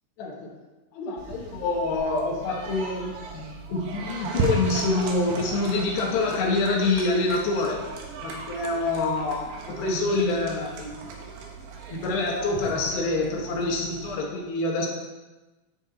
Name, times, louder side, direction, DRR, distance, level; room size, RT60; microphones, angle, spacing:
voice 1, 0.2-0.5 0.9-7.8 8.2-11.1 11.9-14.9, left 3 dB, 65° left, -2 dB, 3.1 m, -26 dB
sound 1, 1.2-14.1, right 3 dB, 80° right, 3.7 m, -36 dB
13.0 x 4.8 x 4.4 m, 1.1 s
omnidirectional pair, 5.9 m